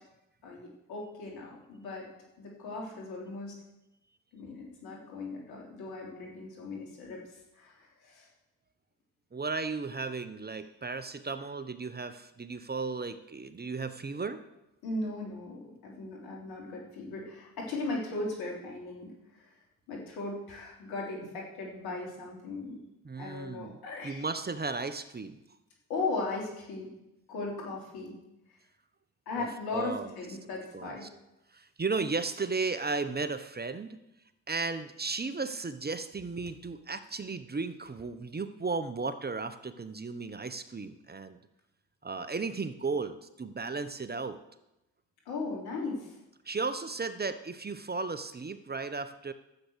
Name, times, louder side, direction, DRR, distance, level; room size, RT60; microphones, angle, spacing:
voice 1, 0.4-2.1 2.4-3.5 4.3-7.2 7.6-8.3 14.8-19.1 19.9-22.8 23.2-24.2 25.9-26.9 27.3-28.1 29.3-31.0 45.3-46.1, left 3 dB, 80° left, -2 dB, 3.7 m, -37 dB
voice 2, 9.3-14.4 23.0-23.8 24.0-25.4 29.4-29.5 29.7-30.1 30.7-31.1 31.5-34.0 34.5-41.4 42.0-44.4 46.4-49.3, right 4 dB, 25° right, 11 dB, 1.0 m, -35 dB
11.5 x 8.0 x 6.4 m, 0.90 s
hypercardioid pair, 50°, 37 cm